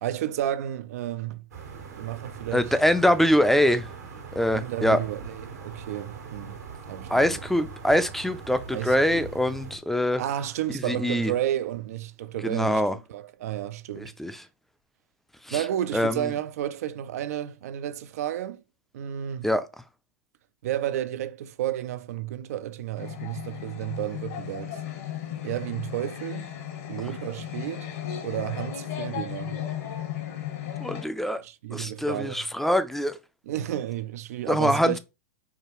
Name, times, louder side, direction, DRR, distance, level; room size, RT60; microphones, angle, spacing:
voice 1, 0.0-1.5 2.0-2.7 4.5-6.6 6.9-7.4 8.7-9.3 10.2-12.8 13.1-14.1 15.5-18.6 18.9-19.5 20.6-24.8 25.4-26.5 26.9-27.9 28.2-29.6 31.4-32.4 33.5-35.0, right 12 dB, 70° right, 0.3 m, -32 dB
sound 1, 1.5-9.8, right 5 dB, 85° right, 1.4 m, -41 dB
voice 2, 2.5-3.9 4.3-5.0 7.1-10.2 10.8-11.3 12.4-13.0 14.0-14.3 15.4-15.6 15.9-16.3 19.4-19.7 30.8-31.4 31.7-33.2 34.5-35.0, equal, 5° left, 0.4 m, -23 dB
sound 2, 23.0-31.1, left 10 dB, 60° left, 1.0 m, -35 dB
4.7 x 2.3 x 3.0 m
hypercardioid pair, 105°, 9 cm